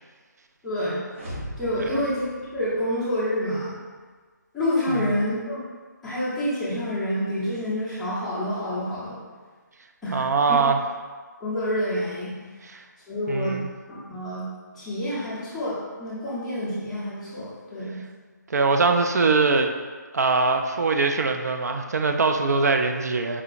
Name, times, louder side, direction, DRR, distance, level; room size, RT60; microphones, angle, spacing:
voice 1, 0.6-1.0 1.6-2.3 2.5-3.7 4.5-5.6 6.0-9.2 10.0-10.6 11.4-12.3 13.1-13.6 13.9-14.4 14.7-18.0, left 1 dB, ahead, -13 dB, 0.6 m, -28 dB
sound 1, 1.1-3.2, equal, 40° right, 0.8 m, -39 dB
voice 2, 10.1-10.8 12.7-12.8 13.3-13.7 18.5-19.7 20.1-23.4, right 4 dB, 60° right, 5 dB, 0.4 m, -22 dB
4.8 x 2.8 x 2.5 m, 1.5 s
figure-of-eight pair, 165°, 10 cm